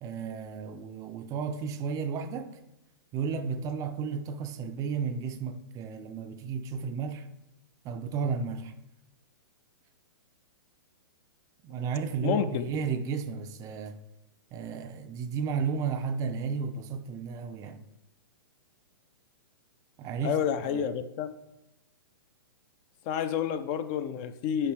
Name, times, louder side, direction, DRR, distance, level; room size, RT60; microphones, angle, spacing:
voice 1, 0.0-2.5 3.1-7.3 7.8-8.7 11.6-14.0 14.5-17.8 20.0-20.3 20.6-20.8, right 6 dB, 25° right, 0.4 m, -33 dB
voice 2, 12.2-12.7 20.2-21.3 23.1-24.7, left 8 dB, 35° left, 0.5 m, -29 dB
8.6 x 5.7 x 3.2 m
hypercardioid pair, 125°, 13 cm